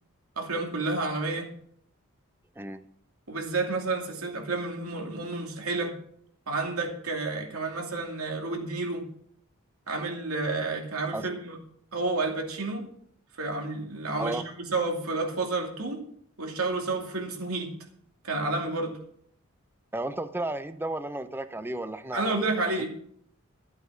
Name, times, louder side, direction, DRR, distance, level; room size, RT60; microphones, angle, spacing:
voice 1, 0.4-1.5 3.3-5.9 6.5-9.0 9.9-11.6 11.9-12.8 13.4-16.0 16.4-17.7 18.2-19.0 22.1-22.9, right 3 dB, 85° right, 2 dB, 2.7 m, -30 dB
voice 2, 19.9-22.9, right 1 dB, 10° right, 11 dB, 0.7 m, -34 dB
12.5 x 8.2 x 6.2 m, 0.65 s
head